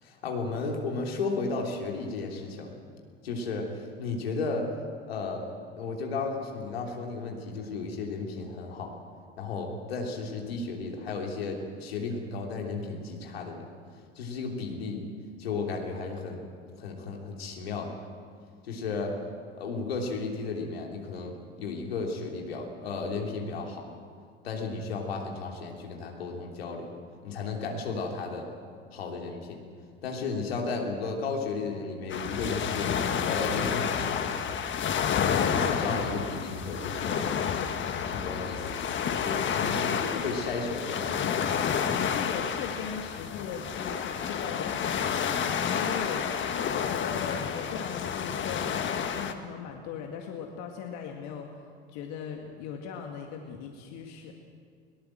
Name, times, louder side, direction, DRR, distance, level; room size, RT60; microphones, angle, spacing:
voice 1, 0.0-2.8 3.2-4.7 5.0-5.5 5.7-8.9 9.4-13.7 14.1-15.0 15.4-16.4 16.8-17.9 18.6-19.1 19.5-23.9 24.4-26.9 27.2-28.5 28.9-29.6 30.0-34.3 35.5-37.2 38.1-38.8 39.1-41.6, left 4 dB, 85° left, 1 dB, 3.3 m, -34 dB
sound 1, 32.1-49.3, left 7 dB, 40° left, 1.8 m, -30 dB
voice 2, 39.6-40.3 42.0-46.4 46.7-51.6 51.9-54.3, left 6 dB, 65° left, 2 dB, 2.2 m, -39 dB
21.5 x 18.5 x 7.7 m, 2.1 s
hypercardioid pair, 75°, 30 cm